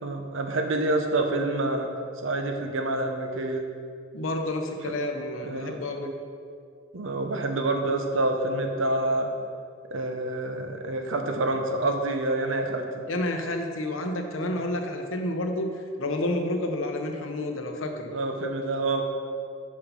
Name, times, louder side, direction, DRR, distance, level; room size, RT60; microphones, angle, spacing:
voice 1, 0.0-1.9 2.2-3.6 4.8-4.9 5.4-5.8 6.9-9.3 9.9-13.0 18.1-19.0, right 2 dB, 80° right, 4 dB, 0.8 m, -27 dB
voice 2, 4.1-6.1 13.1-18.1, left 1 dB, 85° left, 4 dB, 0.9 m, -30 dB
6.4 x 5.6 x 5.7 m, 2.3 s
head